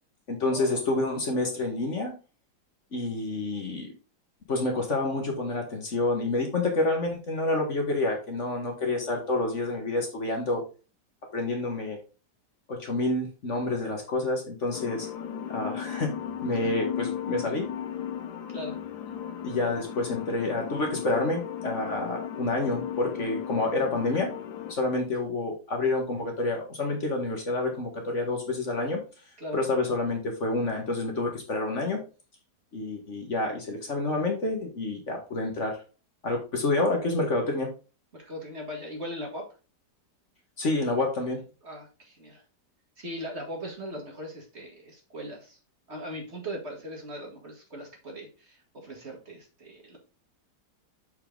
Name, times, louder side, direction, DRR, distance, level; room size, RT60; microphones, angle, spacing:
voice 1, 0.3-2.1 2.9-3.9 4.5-10.6 11.3-12.0 12.7-15.1 15.5-16.1 16.4-17.7 19.4-24.3 24.7-29.0 29.5-32.0 32.7-35.8 36.2-37.7 40.6-41.4, left 2 dB, 45° left, 2 dB, 1.6 m, -28 dB
sound 1, 14.7-24.8, left 9 dB, 75° left, 1.3 m, -35 dB
voice 2, 18.5-18.8 29.4-29.6 38.1-39.4 41.6-42.4 43.0-45.6 45.9-50.0, equal, 40° right, 1 dB, 2.0 m, -39 dB
6.8 x 4.7 x 3.8 m, 0.34 s
omnidirectional pair, 1.8 m